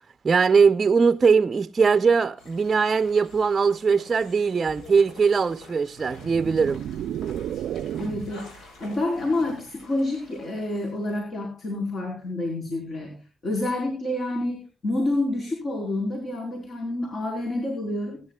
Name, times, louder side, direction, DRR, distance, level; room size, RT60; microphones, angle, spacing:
voice 1, 0.2-6.8, right 5 dB, 35° right, 0.6 m, -20 dB
sound 1, 2.4-11.2, left 1 dB, 75° left, 7.3 m, -48 dB
sound 2, 6.0-8.5, right 10 dB, 75° right, 0.5 m, -32 dB
voice 2, 8.0-18.2, left 2 dB, 50° left, 4.6 m, -28 dB
24.0 x 10.5 x 2.3 m
cardioid pair, 90°, 0 cm